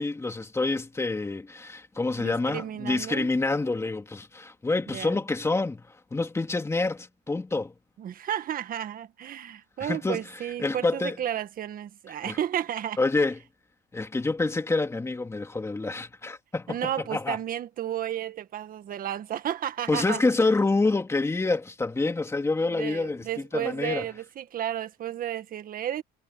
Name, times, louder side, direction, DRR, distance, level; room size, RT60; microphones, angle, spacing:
voice 1, 0.0-7.7 9.8-10.2 10.6-11.2 12.2-12.4 13.0-13.4 13.9-16.8 17.1-17.4 19.9-24.1, left 3 dB, 15° left, 2.5 m, -27 dB
voice 2, 2.2-3.3 4.9-5.2 8.0-13.0 16.7-20.2 22.6-26.0, right 10 dB, 45° right, 1.8 m, -32 dB
cardioid pair, 125°, 20 cm